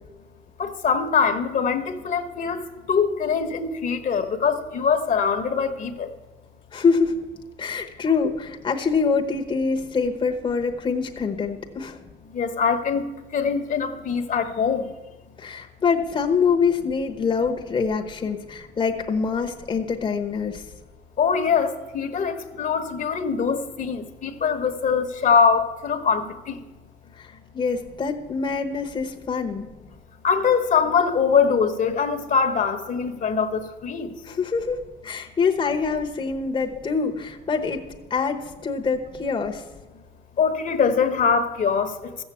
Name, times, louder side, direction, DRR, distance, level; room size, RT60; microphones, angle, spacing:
voice 1, 0.6-2.6 2.9-6.1 12.3-13.1 13.3-14.8 21.2-26.5 30.2-34.1 40.4-41.9, left 6 dB, 50° left, 8 dB, 1.2 m, -23 dB
voice 2, 6.7-7.2 7.6-12.0 15.4-20.6 27.1-29.7 34.2-37.8 38.1-39.6, left 5 dB, 30° left, 3 dB, 1.0 m, -25 dB
14.0 x 7.2 x 8.4 m, 1.2 s
cardioid pair, 120°, 18 cm